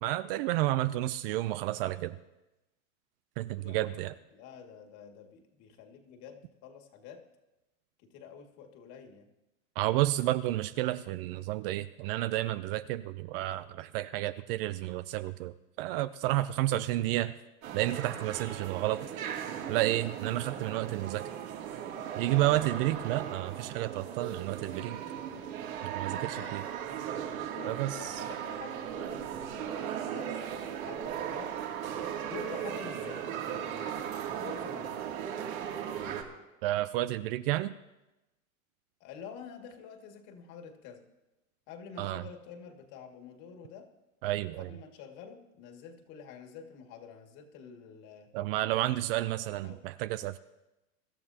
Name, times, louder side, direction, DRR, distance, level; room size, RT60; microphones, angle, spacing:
voice 1, 0.0-2.2 3.4-4.1 9.8-17.3 17.7-19.1 19.7-21.3 22.2-25.0 25.8-26.6 27.6-28.2 36.6-37.7 42.0-42.2 44.2-44.7 48.3-50.4, right 15 dB, 45° right, 14 dB, 0.5 m, -31 dB
voice 2, 3.6-7.3 8.0-9.3 26.1-26.6 27.5-31.6 32.3-34.0 34.4-35.0 39.0-41.1 41.7-43.9 44.6-48.3 49.4-49.8, left 7 dB, 45° left, 4 dB, 2.3 m, -48 dB
sound 1, 17.6-36.2, right 9 dB, 75° right, 2.7 m, -37 dB
24.5 x 12.5 x 2.9 m, 0.98 s
hypercardioid pair, 130°, 42 cm